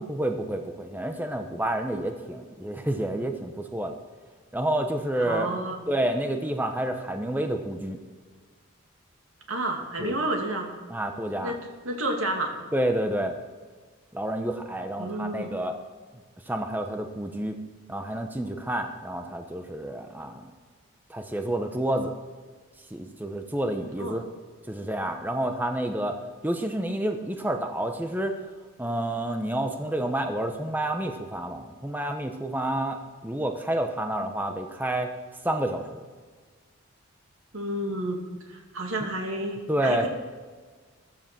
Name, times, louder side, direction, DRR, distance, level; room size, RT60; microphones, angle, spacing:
voice 1, 0.0-3.9 4.5-5.5 5.9-8.0 10.0-10.1 10.9-11.6 12.7-13.4 14.1-15.7 16.5-17.6 17.9-20.4 21.1-22.1 22.9-24.2 24.7-26.2 26.4-28.3 28.8-35.1 35.4-36.0 39.7-40.1, right 1 dB, 10° right, 5 dB, 0.8 m, -29 dB
voice 2, 5.2-5.8 9.5-10.7 11.4-11.6 11.8-12.5 15.0-15.5 24.0-24.2 37.5-40.1, right 1 dB, 75° right, 2 dB, 2.5 m, -30 dB
14.5 x 12.5 x 6.1 m, 1.4 s
head